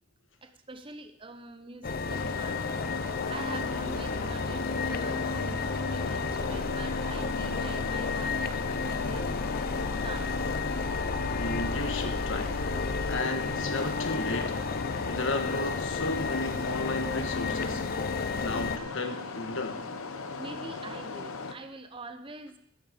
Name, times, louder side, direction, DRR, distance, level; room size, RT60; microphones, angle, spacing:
voice 1, 0.4-2.7 3.3-8.4 8.7-9.3 10.0-10.5 20.4-22.6, right 3 dB, 25° right, 8 dB, 0.8 m, -44 dB
sound 1, 1.8-18.8, left 4 dB, 45° left, 0.5 m, -32 dB
sound 2, 2.1-21.5, left 4 dB, 80° left, 0.9 m, -38 dB
Wind instrument woodwind instrument, 8.8-13.8, left 4 dB, 15° left, 3.5 m, -55 dB
voice 2, 11.0-12.6 13.1-14.6 15.1-19.9, left 2 dB, 65° left, 6 dB, 1.4 m, -34 dB
15.0 x 9.1 x 5.2 m, 0.74 s
head